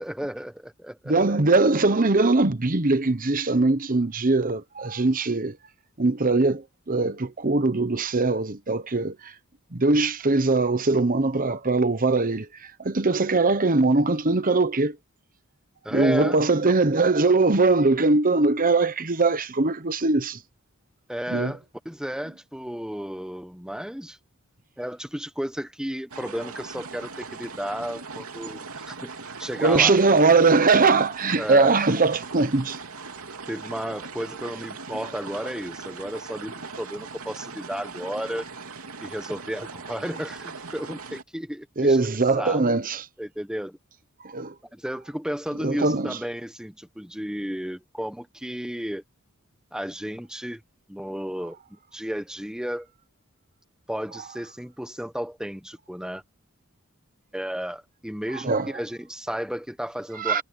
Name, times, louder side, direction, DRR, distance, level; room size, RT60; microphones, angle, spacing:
voice 1, 0.0-1.2 15.8-16.4 21.1-24.2 24.8-29.1 29.4-30.0 31.4-31.7 33.5-38.4 39.0-42.0 42.4-42.6 43.2-43.8 44.7-49.0 49.7-50.6 50.9-52.9 53.9-56.2 57.3-60.4, equal, 5° right, 1.1 m, -33 dB
voice 2, 1.1-5.6 6.0-9.3 9.7-15.0 15.9-20.4 21.3-21.5 29.6-32.8 41.8-43.0 44.2-44.5 45.6-46.2 58.4-58.7 60.2-60.4, right 3 dB, 40° right, 1.0 m, -21 dB
sound 1, 26.1-41.2, right 4 dB, 80° right, 3.1 m, -40 dB
head